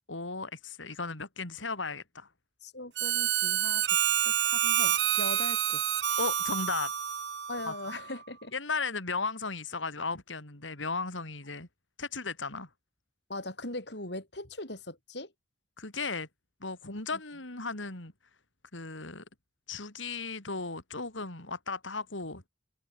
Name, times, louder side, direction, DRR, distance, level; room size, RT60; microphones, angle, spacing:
voice 1, 0.1-2.3 6.2-6.9 7.7-7.8 8.5-11.7 12.0-12.7 15.8-16.3 16.6-18.1 18.7-19.2 19.7-22.5, left 4 dB, 90° left, 4.4 m, -35 dB
voice 2, 2.6-5.8 7.5-8.5 13.3-15.3 17.1-17.2, left 2 dB, 60° left, 7.3 m, -40 dB
Harmonica, 3.0-8.1, right 10 dB, 65° right, 1.4 m, -28 dB
head